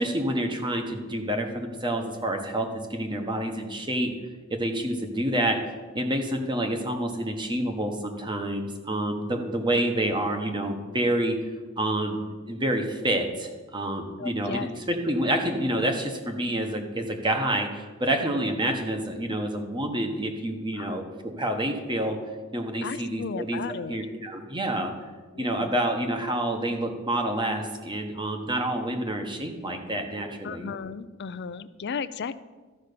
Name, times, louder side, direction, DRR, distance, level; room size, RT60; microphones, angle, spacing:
voice 1, 0.0-4.1 4.5-5.6 5.9-11.3 11.8-22.2 22.5-23.6 23.9-24.9 25.4-30.7, right 1 dB, 20° right, 4 dB, 1.2 m, -28 dB
voice 2, 14.2-14.7 20.8-21.0 22.8-24.0 25.3-25.7 30.4-32.4, left 6 dB, 55° left, 15 dB, 0.5 m, -35 dB
13.0 x 5.3 x 6.8 m, 1.3 s
head